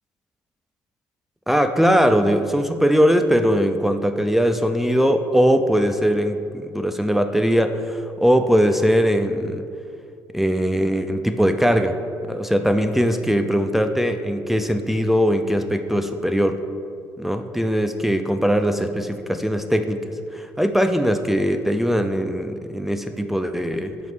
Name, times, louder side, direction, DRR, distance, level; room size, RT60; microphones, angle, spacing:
voice 1, 1.5-9.6 10.3-12.0 12.2-16.6 17.2-24.0, equal, 5° right, 7 dB, 0.4 m, -20 dB
5.5 x 4.6 x 6.3 m, 2.4 s
cardioid pair, 100°, 7 cm